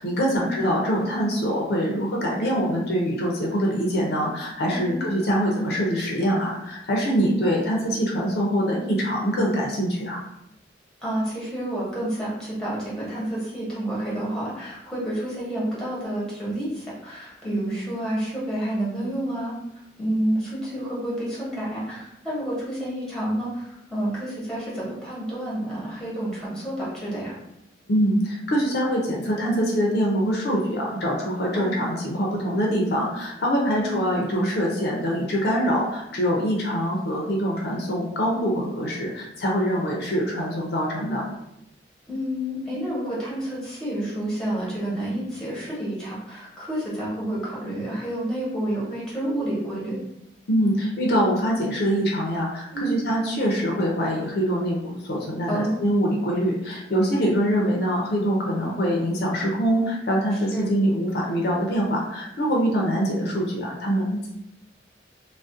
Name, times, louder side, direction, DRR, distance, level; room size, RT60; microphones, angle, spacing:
voice 1, 0.0-10.2 27.9-41.2 50.5-64.3, equal, 60° left, -2 dB, 0.4 m, -24 dB
voice 2, 4.7-5.1 11.0-19.5 20.0-27.3 31.5-31.8 33.7-34.1 42.1-50.0 52.7-53.0 55.5-55.8 60.5-60.7, right 1 dB, 5° left, -7 dB, 0.8 m, -29 dB
2.4 x 2.0 x 2.5 m, 0.83 s
head